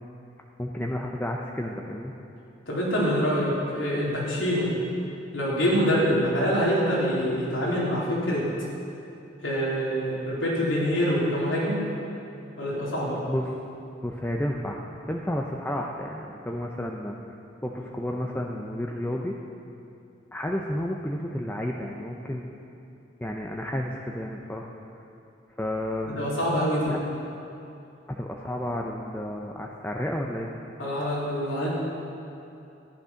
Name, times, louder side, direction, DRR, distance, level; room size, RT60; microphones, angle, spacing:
voice 1, 0.6-2.1 13.3-13.5 14.0-17.2 17.6-19.4 20.3-22.5 23.2-24.7 25.6-26.2 26.9-27.0 28.1-30.5, left 1 dB, 10° left, 0 dB, 0.7 m, -31 dB
voice 2, 2.7-4.7 5.3-8.4 9.4-11.8 12.6-13.2 26.1-26.9 30.8-31.7, equal, 90° left, -5 dB, 3.6 m, -25 dB
13.5 x 11.0 x 5.8 m, 2.8 s
head